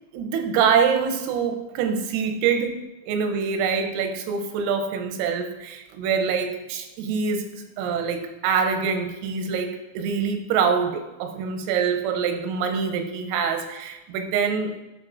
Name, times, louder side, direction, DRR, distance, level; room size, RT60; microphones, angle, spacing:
voice 1, 0.1-2.8 3.1-14.7, right 6 dB, 90° right, 5 dB, 3.5 m, -25 dB
11.5 x 4.5 x 2.5 m, 1.0 s
omnidirectional pair, 5.9 m